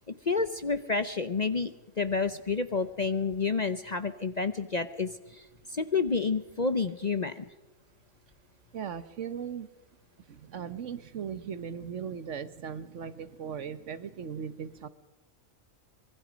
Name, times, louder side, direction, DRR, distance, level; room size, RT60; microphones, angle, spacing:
voice 1, 0.1-7.5, left 4 dB, 40° left, 11 dB, 0.7 m, -30 dB
voice 2, 8.7-9.7 10.3-14.9, right 7 dB, 65° right, 13 dB, 1.3 m, -38 dB
25.0 x 23.0 x 5.1 m, 1.0 s
omnidirectional pair, 1.4 m